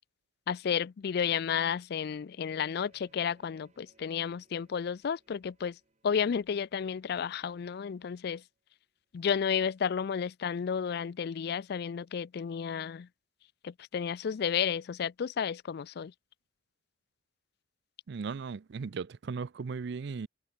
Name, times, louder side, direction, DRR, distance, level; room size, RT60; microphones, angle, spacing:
voice 1, 0.5-5.8 6.0-8.4 9.1-13.1 13.6-16.1, left 7 dB, 60° left, 0.4 m, -32 dB
sound 1, 2.5-8.1, right 2 dB, 40° right, 2.4 m, -67 dB
voice 2, 18.1-20.3, right 5 dB, 65° right, 0.4 m, -37 dB
head